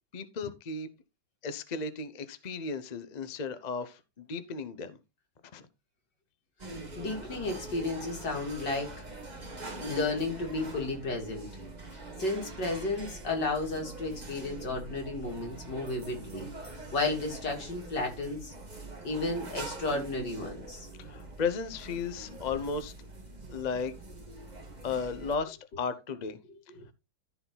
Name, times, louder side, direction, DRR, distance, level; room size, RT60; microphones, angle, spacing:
voice 1, 0.1-0.9 1.4-5.0 5.5-5.6 21.0-22.9 23.5-23.9 24.8-26.4, left 5 dB, 35° left, 0.7 m, -35 dB
sound 1, 6.6-25.4, right 2 dB, 25° right, 2.0 m, -44 dB
voice 2, 7.0-8.9 9.7-11.5 12.2-18.5 19.0-20.9 26.5-26.9, left 2 dB, 80° left, 3.4 m, -33 dB
14.0 x 4.8 x 3.9 m
omnidirectional pair, 1.9 m